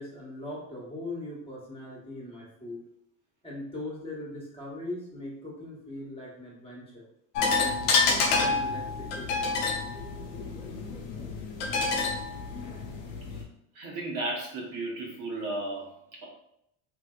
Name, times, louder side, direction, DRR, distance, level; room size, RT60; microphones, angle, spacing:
voice 1, 0.0-2.8 3.4-7.1 7.6-9.5, left 1 dB, 15° left, -5 dB, 1.2 m, -40 dB
sound 1, 7.4-13.4, left 4 dB, 80° left, 0.8 m, -28 dB
voice 2, 13.7-16.3, right 2 dB, 55° right, -2 dB, 1.1 m, -35 dB
3.2 x 2.8 x 2.3 m, 0.75 s
supercardioid pair, 95°, 38 cm